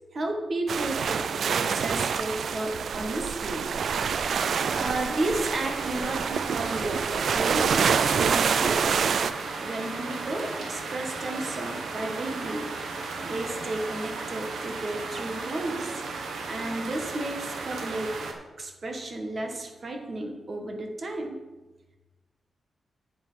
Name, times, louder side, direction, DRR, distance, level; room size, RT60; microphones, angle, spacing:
voice 1, 0.1-1.2 1.5-3.7 4.7-9.0 9.6-12.7 13.2-16.0 16.5-18.1 18.6-21.4, right 2 dB, 40° right, 3 dB, 1.6 m, -33 dB
sound 1, 0.7-9.3, right 6 dB, 65° right, 0.4 m, -27 dB
sound 2, 3.9-18.3, right 3 dB, 90° right, 1.5 m, -35 dB
8.8 x 7.4 x 5.8 m, 1.1 s
wide cardioid pair, 125°, 0 cm